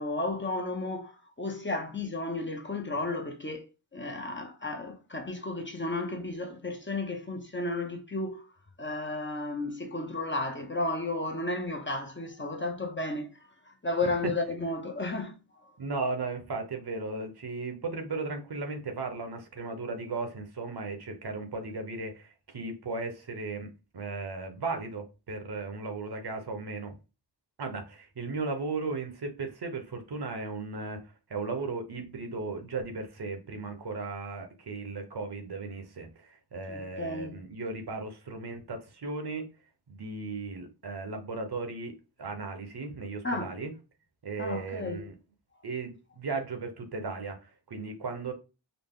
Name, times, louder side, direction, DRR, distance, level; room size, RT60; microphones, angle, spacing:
voice 1, 0.0-3.7 3.9-8.5 8.8-15.7 36.7-37.4 43.2-43.5 44.4-45.1, left 2 dB, 25° left, 0.7 m, -33 dB
voice 2, 15.8-23.7 23.9-26.9 27.6-39.4 39.9-41.9 42.2-43.7 44.2-45.1 45.6-48.3, right 3 dB, 55° right, 0.9 m, -36 dB
3.9 x 2.0 x 3.6 m
wide cardioid pair, 55°, 45 cm